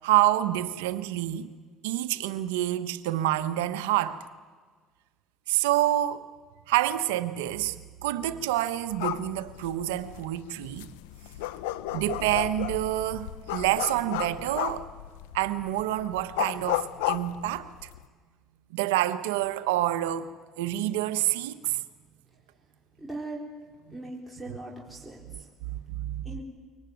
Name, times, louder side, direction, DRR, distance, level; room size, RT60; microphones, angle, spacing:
voice 1, 0.0-1.5 1.8-4.2 5.5-6.3 6.7-10.9 11.9-14.9 15.3-17.9 18.7-20.3 20.6-21.8 25.2-25.4 25.7-26.2, right 14 dB, 90° right, 1.1 m, -27 dB
sound 1, 8.9-18.0, left 14 dB, 90° left, 0.9 m, -34 dB
voice 2, 23.0-23.4 23.9-25.5 26.2-26.4, right 2 dB, ahead, 4.4 m, -39 dB
23.5 x 19.0 x 9.4 m
supercardioid pair, 75°, 0 cm